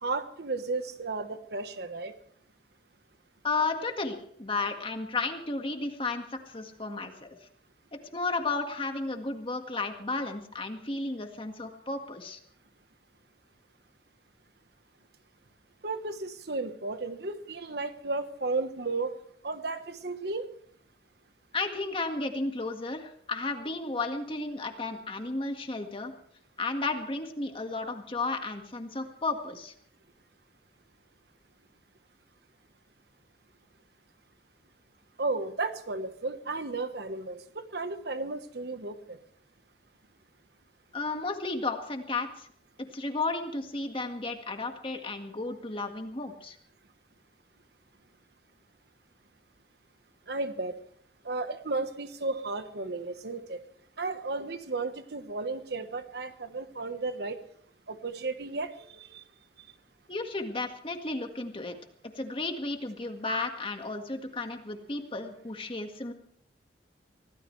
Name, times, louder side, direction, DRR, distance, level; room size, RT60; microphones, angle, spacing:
voice 1, 0.0-2.1 15.8-19.1 19.4-20.5 35.2-39.2 50.3-50.8 51.2-53.6 54.0-57.4 57.9-59.2, right 3 dB, 65° right, 9 dB, 1.2 m, -34 dB
voice 2, 3.4-7.3 8.1-12.4 21.5-26.1 26.6-29.7 40.9-42.5 42.9-46.6 60.1-61.8 62.2-66.1, left 3 dB, 30° left, 5 dB, 1.8 m, -33 dB
25.0 x 16.5 x 3.3 m, 0.63 s
head